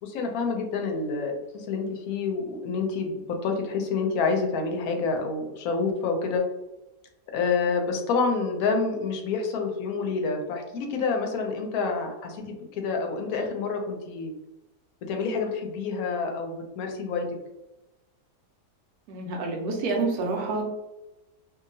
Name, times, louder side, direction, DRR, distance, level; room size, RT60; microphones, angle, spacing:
voice 1, 0.0-6.4 7.3-14.3 15.1-17.3, left 4 dB, 70° left, 3 dB, 0.9 m, -28 dB
voice 2, 19.1-20.6, right 3 dB, 70° right, 1 dB, 1.1 m, -28 dB
2.8 x 2.6 x 2.6 m, 1.0 s
omnidirectional pair, 1.8 m